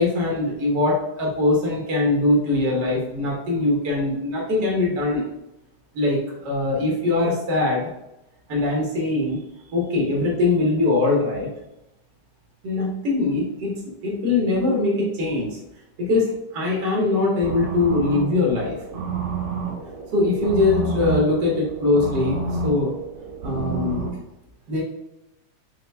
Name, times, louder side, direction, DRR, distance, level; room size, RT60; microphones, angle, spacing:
voice 1, 0.0-5.2 5.9-6.2 6.4-7.8 8.5-9.4 9.7-11.5 12.6-15.5 16.0-18.8 20.1-22.9 23.4-24.1 24.7-24.8, left 2 dB, 90° right, -2 dB, 0.9 m, -22 dB
sound 1, 17.4-24.1, right 3 dB, 55° right, 2.4 m, -29 dB
5.8 x 2.1 x 3.3 m, 0.88 s
omnidirectional pair, 3.4 m